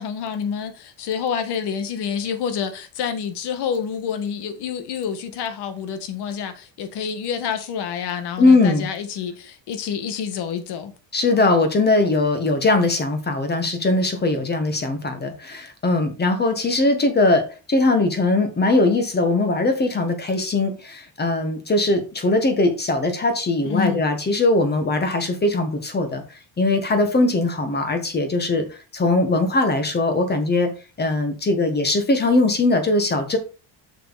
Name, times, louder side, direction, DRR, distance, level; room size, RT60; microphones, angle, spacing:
voice 1, 0.0-10.9 23.6-24.0, left 7 dB, 60° left, 1.6 m, -28 dB
voice 2, 8.4-8.9 11.1-26.2 26.6-28.7 28.9-30.7 31.0-33.4, left 2 dB, 20° left, 1.5 m, -20 dB
6.6 x 6.4 x 4.1 m
cardioid pair, 155°, 44 cm